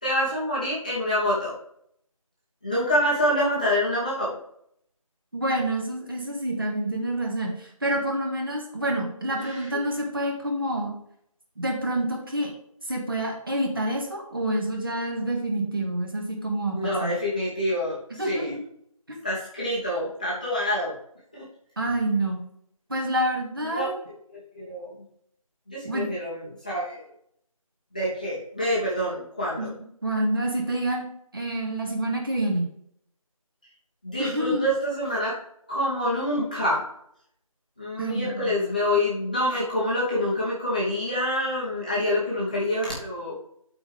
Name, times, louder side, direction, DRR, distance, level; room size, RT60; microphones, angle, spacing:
voice 1, 0.0-1.6 2.6-4.4 9.4-9.8 16.7-18.6 19.2-20.9 21.3-21.5 23.6-23.8 24.3-24.9 25.7-27.0 27.9-29.7 34.0-35.4 35.7-36.8 37.8-43.3, left 1 dB, 15° left, -8 dB, 1.0 m, -26 dB
voice 2, 5.3-10.9 11.6-12.5 12.9-17.1 18.2-18.7 19.1-19.2 21.8-22.4 22.9-23.9 25.8-26.1 29.6-29.7 30.0-31.1 31.3-32.7 34.2-34.7 38.0-38.7, right 1 dB, 40° right, 1 dB, 1.9 m, -27 dB
12.0 x 4.4 x 3.4 m, 0.70 s
figure-of-eight pair, 170°, 18 cm